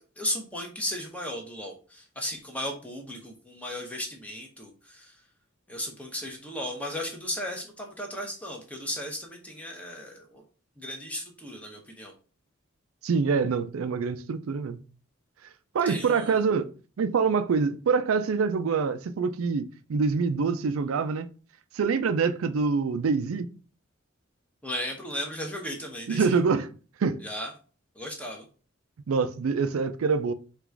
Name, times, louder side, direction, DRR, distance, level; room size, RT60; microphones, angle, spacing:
voice 1, 0.2-5.1 5.7-10.4 10.8-12.1 15.9-16.4 24.6-26.4 27.2-27.5 28.0-28.4, left 1 dB, 5° left, 0.8 m, -35 dB
voice 2, 13.0-14.8 15.7-16.7 17.0-21.3 21.7-23.5 26.1-26.7 27.0-27.2 29.1-30.3, right 5 dB, 85° right, 0.4 m, -25 dB
3.8 x 2.4 x 4.4 m
head